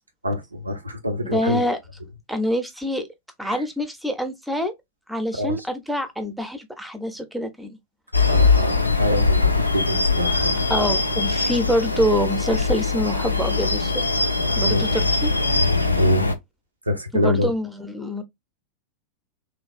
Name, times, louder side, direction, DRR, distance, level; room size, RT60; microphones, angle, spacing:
voice 1, 0.2-1.6 3.5-3.6 5.3-5.6 8.2-10.9 14.6-14.8 15.9-16.3 16.9-17.5, left 1 dB, 85° right, 0.6 m, -25 dB
voice 2, 1.2-1.8 2.3-3.1 3.4-4.7 5.1-7.8 10.7-14.0 14.6-15.3 17.1-18.2, equal, 5° right, 0.6 m, -25 dB
sound 1, 8.1-16.4, left 3 dB, 85° left, 0.4 m, -21 dB
3.1 x 2.2 x 2.4 m
figure-of-eight pair, 90°, 0 cm